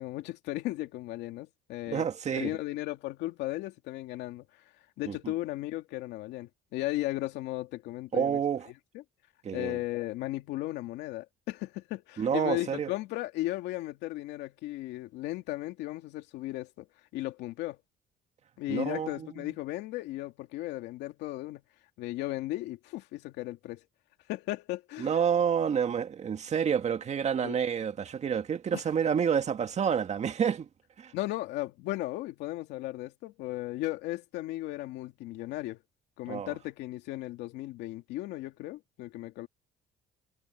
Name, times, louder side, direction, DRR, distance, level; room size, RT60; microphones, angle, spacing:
voice 1, 0.0-2.1 2.3-4.6 5.0-8.4 8.9-9.0 9.5-16.9 17.1-17.8 18.6-21.6 22.0-23.9 24.3-25.1 27.4-27.6 28.7-28.8 31.1-35.8 36.2-39.5, left 17 dB, 90° left, 2.5 m, -36 dB
voice 2, 1.9-2.6 5.1-5.2 8.1-8.7 9.4-9.8 12.2-12.9 18.7-19.5 25.0-30.7 31.0-31.1 36.3-36.5, right 7 dB, 40° right, 2.0 m, -29 dB
cardioid pair, 110°, 17 cm